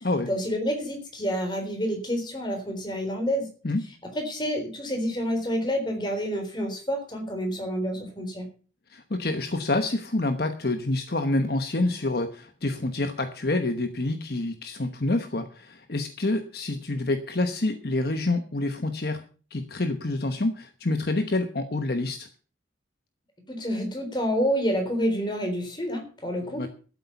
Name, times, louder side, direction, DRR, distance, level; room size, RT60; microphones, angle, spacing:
voice 1, 0.3-3.5 4.1-8.5 23.5-26.7, equal, 25° left, 4 dB, 3.9 m, -28 dB
voice 2, 8.9-19.2 19.5-22.3 26.5-26.7, left 2 dB, 55° left, 8 dB, 1.1 m, -27 dB
13.0 x 8.1 x 7.0 m, 0.39 s
head